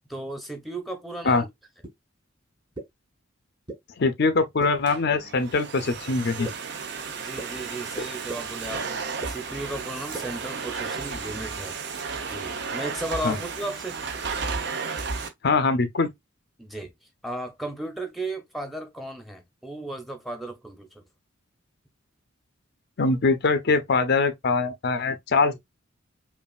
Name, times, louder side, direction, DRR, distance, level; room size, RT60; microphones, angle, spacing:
voice 1, 0.1-1.5 7.2-11.8 12.3-14.0 16.6-16.9 17.2-21.0, right 1 dB, ahead, 0.8 m, -35 dB
sound 1, 1.8-1.9 2.7-2.8 3.7-3.8 4.6-4.7 5.5-5.6 6.4-6.5 7.4-7.5 8.3-8.4 9.2-9.3 10.1-10.2, right 3 dB, 25° right, 1.0 m, -34 dB
voice 2, 4.0-6.5 13.2-13.4 15.4-16.1 23.0-25.6, left 3 dB, 55° left, 0.5 m, -23 dB
Domestic sounds home sounds, 4.6-15.3, right 5 dB, 55° right, 0.7 m, -33 dB
5.3 x 2.5 x 2.3 m
head